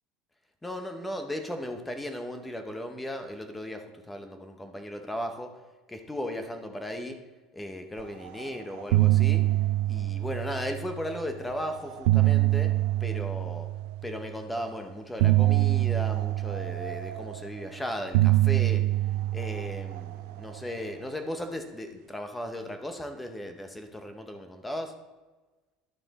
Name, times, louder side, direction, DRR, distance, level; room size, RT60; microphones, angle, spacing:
voice 1, 0.6-5.5 5.9-7.2 7.5-9.4 9.9-12.7 13.0-13.7 14.0-18.8 19.3-24.9, left 1 dB, 5° left, 6 dB, 0.7 m, -36 dB
sound 1, 8.3-8.5 8.7-11.1 11.8-14.2 15.2-17.6 18.1-20.7, right 17 dB, 75° right, 0.4 m, -25 dB
11.0 x 5.7 x 4.0 m, 1.2 s
cardioid pair, 155°, 0 cm